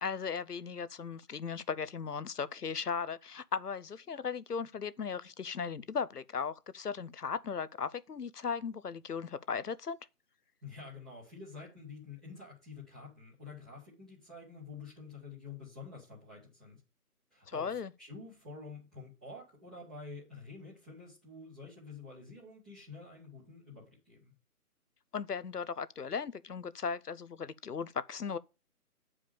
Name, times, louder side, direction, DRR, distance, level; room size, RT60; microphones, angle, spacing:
voice 1, 0.0-10.0 17.5-17.9 25.1-28.4, left 6 dB, 90° left, 0.7 m, -37 dB
voice 2, 10.6-16.8 17.3-24.3, left 4 dB, 5° right, 0.8 m, -48 dB
8.8 x 4.9 x 7.0 m
figure-of-eight pair, 150°, 45 cm